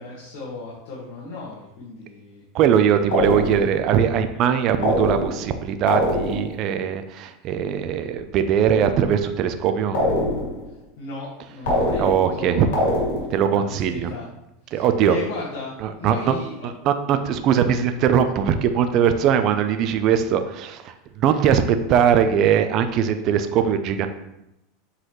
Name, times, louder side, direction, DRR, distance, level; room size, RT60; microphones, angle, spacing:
voice 1, 0.0-2.4 11.0-12.8 13.5-14.3 14.6-16.7, left 3 dB, 65° left, -6 dB, 1.7 m, -35 dB
voice 2, 2.5-10.0 12.0-12.7 13.3-14.1 14.7-15.2 15.8-16.4 16.6-21.6 21.9-24.1, right 8 dB, 40° right, 9 dB, 0.5 m, -20 dB
sound 1, 3.1-3.8 4.8-5.5 5.9-6.6 9.9-10.7 11.7-12.4 12.7-13.5, left 1 dB, 85° left, 2.3 m, -23 dB
7.7 x 4.1 x 3.1 m, 0.85 s
supercardioid pair, 145°, 0 cm